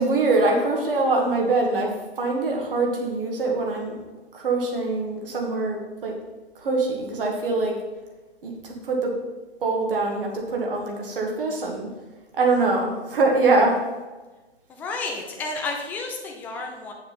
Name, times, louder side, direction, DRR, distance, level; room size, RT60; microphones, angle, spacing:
voice 1, 0.0-4.0 4.3-6.1 6.6-7.7 8.4-9.1 9.6-11.9 12.4-13.8, right 3 dB, 55° right, 0 dB, 2.1 m, -23 dB
voice 2, 14.7-16.9, left 3 dB, 5° left, 1 dB, 0.4 m, -31 dB
7.9 x 6.8 x 4.1 m, 1.2 s
figure-of-eight pair, 120°, 32 cm